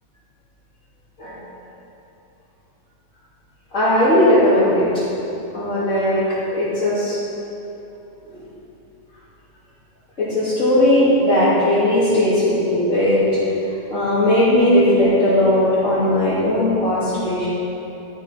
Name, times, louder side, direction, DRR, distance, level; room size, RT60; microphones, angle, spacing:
voice 1, 3.7-4.9 5.5-6.2 6.5-7.2 8.3-8.4 10.2-13.2 13.9-17.5, left 1 dB, 85° left, -14 dB, 3.6 m, -17 dB
12.5 x 8.3 x 5.9 m, 2.9 s
omnidirectional pair, 1.3 m